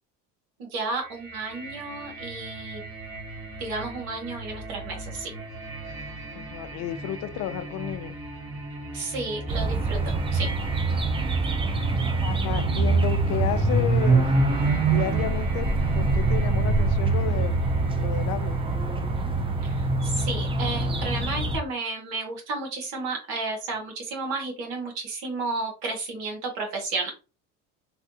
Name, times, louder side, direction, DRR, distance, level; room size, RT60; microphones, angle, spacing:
voice 1, 0.6-2.8 3.6-5.3 8.9-10.5 19.6-27.1, right 3 dB, 75° right, 1.5 m, -32 dB
sound 1, 1.0-20.8, right 2 dB, 45° right, 1.6 m, -39 dB
voice 2, 6.3-8.1 12.2-14.3 14.9-18.6, left 11 dB, 50° left, 0.4 m, -32 dB
sound 2, 9.5-21.6, right 3 dB, 15° right, 0.4 m, -24 dB
3.3 x 2.4 x 2.7 m
supercardioid pair, 90°, 37 cm